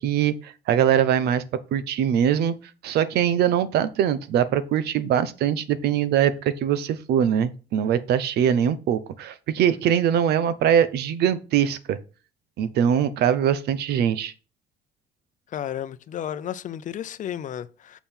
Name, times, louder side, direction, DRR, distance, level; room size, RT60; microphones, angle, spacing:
voice 1, 0.0-1.4 1.7-2.5 2.8-12.0 12.6-14.3, right 9 dB, 75° right, 0.8 m, -22 dB
voice 2, 15.5-18.0, left 10 dB, 50° left, 0.6 m, -33 dB
7.1 x 5.4 x 4.4 m
cardioid pair, 110°, 17 cm